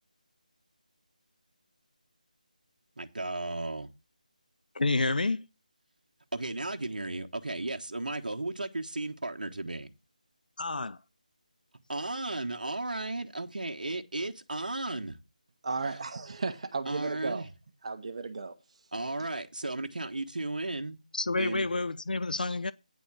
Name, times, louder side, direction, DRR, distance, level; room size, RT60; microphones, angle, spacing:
voice 1, 3.0-3.9 6.3-9.9 11.9-15.2 15.9-16.0 16.8-17.5 18.9-21.0 21.4-21.7, right 2 dB, 75° right, 1.2 m, -35 dB
voice 2, 4.7-5.5 10.6-11.0 21.1-22.7, left 3 dB, 80° left, 0.4 m, -29 dB
voice 3, 15.6-17.5 17.8-18.5, right 4 dB, 45° right, 0.9 m, -34 dB
9.5 x 4.2 x 7.3 m
figure-of-eight pair, 160°, 5 cm